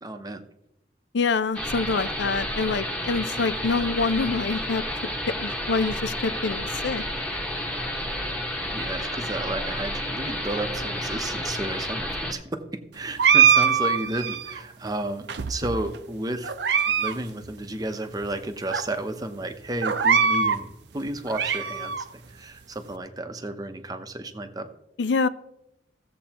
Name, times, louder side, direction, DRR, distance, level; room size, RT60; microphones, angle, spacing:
voice 1, 0.0-0.4 8.7-12.6 12.9-16.5 16.9-24.7, right 1 dB, 20° right, 7 dB, 0.7 m, -32 dB
voice 2, 1.1-4.8 5.4-7.0 25.0-25.3, left 4 dB, 75° left, 14 dB, 0.5 m, -26 dB
sound 1, 1.5-12.3, left 1 dB, 5° left, 1.2 m, -31 dB
sound 2, 13.2-14.6 15.3-16.0 16.4-17.2 17.4-17.5 18.2-18.3 18.7-18.8 19.8-20.6 21.1-22.0, right 7 dB, 70° right, 0.6 m, -22 dB
16.0 x 7.7 x 2.9 m, 0.83 s
head